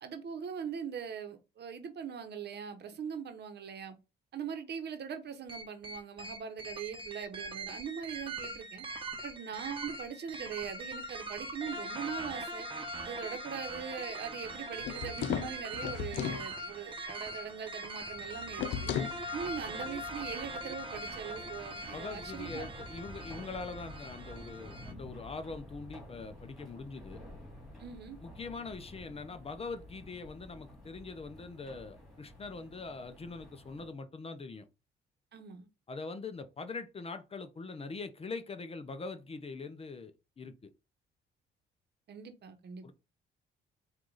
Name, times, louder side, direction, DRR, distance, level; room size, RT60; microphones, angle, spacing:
voice 1, 0.0-3.9 4.3-8.9 9.2-12.7 13.0-18.9 19.3-22.7 23.3-23.4 27.8-28.2 35.3-35.7 42.1-42.9, right 7 dB, 55° right, 0.9 m, -41 dB
sound 1, 5.5-24.9, right 1 dB, 25° right, 0.9 m, -42 dB
sound 2, 14.8-16.5 18.6-19.2, left 9 dB, 70° left, 0.5 m, -35 dB
sound 3, 18.1-33.9, equal, ahead, 2.1 m, -51 dB
voice 2, 21.9-27.2 28.2-34.7 35.9-40.7 42.8-42.9, left 4 dB, 30° left, 0.6 m, -43 dB
4.6 x 2.5 x 3.9 m
cardioid pair, 90°, 20 cm